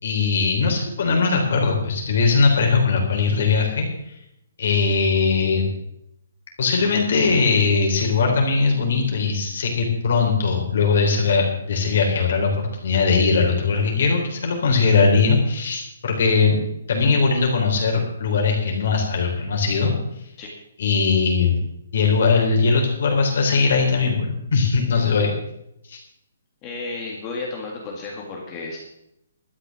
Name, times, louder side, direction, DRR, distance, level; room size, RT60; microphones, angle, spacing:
voice 1, 0.0-4.2 4.6-5.7 6.6-16.6 16.9-19.9 20.8-21.6 21.9-25.3 25.9-26.0, left 4 dB, 50° left, 1 dB, 3.5 m, -20 dB
voice 2, 26.6-28.8, left 3 dB, 15° left, -2 dB, 2.0 m, -32 dB
12.0 x 10.5 x 6.5 m, 0.80 s
hypercardioid pair, 175°, 0 cm